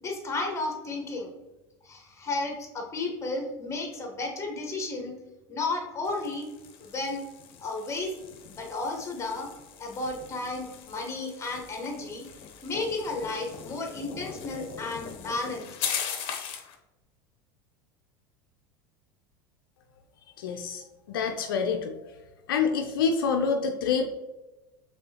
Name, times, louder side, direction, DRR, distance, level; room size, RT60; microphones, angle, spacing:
voice 1, 0.0-1.3 1.8-5.1 5.5-6.5 6.8-7.2 7.6-8.1 8.5-9.5 9.8-12.3 12.6-15.7, left 3 dB, 25° left, 2 dB, 1.3 m, -33 dB
sound 1, 6.0-16.8, left 7 dB, 55° left, 0.8 m, -40 dB
voice 2, 20.4-22.0 22.5-24.1, left 5 dB, 80° left, 4 dB, 0.5 m, -27 dB
5.2 x 3.5 x 2.8 m, 1.0 s
hypercardioid pair, 85°, 12 cm